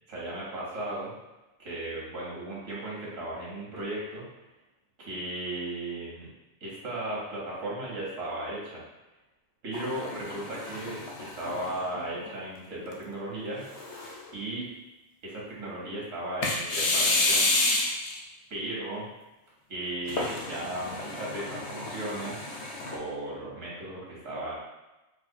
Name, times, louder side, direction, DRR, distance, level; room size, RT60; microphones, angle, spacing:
voice 1, 0.1-1.1 1.6-4.2 5.0-6.3 6.6-8.8 9.6-13.6 14.3-14.7 15.2-17.5 17.8-17.9 18.5-19.1 19.7-22.4 22.9-24.6, right 1 dB, 90° right, -5 dB, 1.5 m, -36 dB
sound 1, 9.7-12.3 12.9-13.0 13.6-14.3 16.4-18.2 20.1-23.0, left 2 dB, 50° left, 0.4 m, -30 dB
4.8 x 2.4 x 2.7 m, 1.0 s
omnidirectional pair, 1.3 m